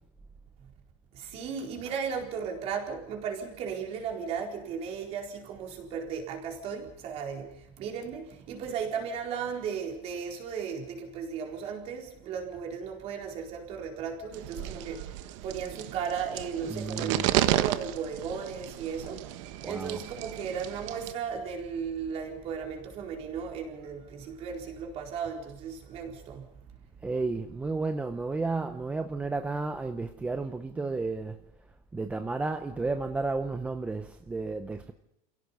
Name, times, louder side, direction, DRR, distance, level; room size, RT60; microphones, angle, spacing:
voice 1, 1.1-26.5, right 6 dB, 35° right, 4.3 m, -36 dB
sound 1, 14.3-21.1, right 15 dB, 55° right, 1.2 m, -32 dB
voice 2, 16.6-17.3 19.6-20.1 27.0-31.4 31.9-34.9, right 3 dB, 5° right, 0.7 m, -32 dB
29.0 x 17.0 x 5.5 m
supercardioid pair, 180°, 19 cm